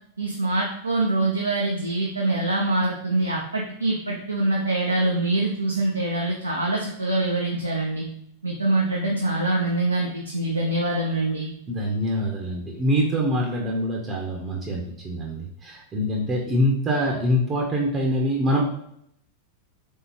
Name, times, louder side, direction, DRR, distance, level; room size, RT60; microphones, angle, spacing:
voice 1, 0.2-8.0 8.4-11.5, right 2 dB, 80° right, -1 dB, 0.5 m, -24 dB
voice 2, 11.7-18.6, equal, 25° right, -1 dB, 0.7 m, -24 dB
3.7 x 3.6 x 2.8 m, 0.72 s
figure-of-eight pair, 90°, 0 cm